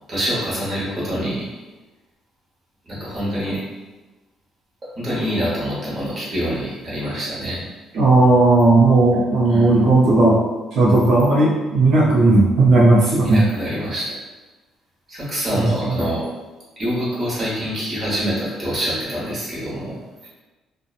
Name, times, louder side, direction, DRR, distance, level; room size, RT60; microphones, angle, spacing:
voice 1, 0.1-1.5 2.9-3.6 4.9-7.6 9.5-9.7 13.2-14.1 15.1-16.3 16.8-20.3, equal, 25° right, -8 dB, 0.9 m, -25 dB
voice 2, 7.9-10.4 10.7-13.4 15.5-16.0, right 2 dB, 65° right, -7 dB, 0.5 m, -15 dB
2.7 x 2.1 x 2.3 m, 1.2 s
cardioid pair, 165°, 0 cm